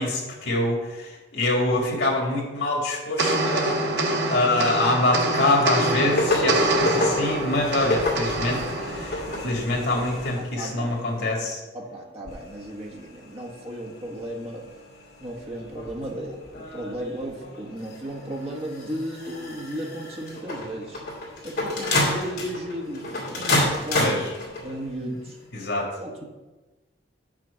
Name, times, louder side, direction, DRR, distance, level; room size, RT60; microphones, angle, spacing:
voice 1, 0.0-3.9 4.3-11.6 23.9-24.3 25.5-25.9, left 2 dB, 75° left, -1 dB, 1.9 m, -25 dB
sound 1, 3.2-9.8, right 2 dB, 65° right, 1.1 m, -26 dB
sound 2, 6.1-11.2 12.3-24.9 25.6-25.7, left 1 dB, 55° left, 2.4 m, -30 dB
voice 2, 10.4-14.7 15.2-21.0 21.4-24.2 24.6-25.4 26.0-26.2, right 1 dB, 30° right, -1 dB, 1.3 m, -35 dB
6.0 x 5.7 x 6.7 m, 1.2 s
head